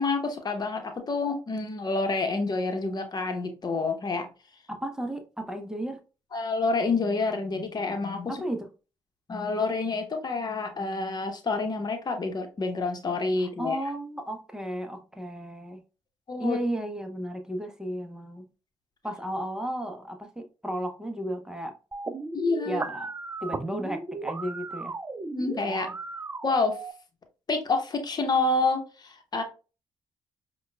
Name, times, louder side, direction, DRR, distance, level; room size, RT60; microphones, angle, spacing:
voice 1, 0.0-4.2 6.3-8.4 9.3-13.8 16.3-16.6 22.3-22.8 25.3-26.0 26.4-26.7 27.5-29.4, left 3 dB, 40° left, 5 dB, 1.0 m, -28 dB
voice 2, 4.7-6.0 8.3-8.7 13.6-15.8 16.4-18.5 19.0-21.7 22.6-23.1 23.4-24.9, right 1 dB, 5° right, 5 dB, 0.8 m, -34 dB
sound 1, 21.9-26.9, right 3 dB, 25° right, 0.4 m, -36 dB
5.1 x 2.3 x 2.3 m, 0.33 s
supercardioid pair, 55°, 10 cm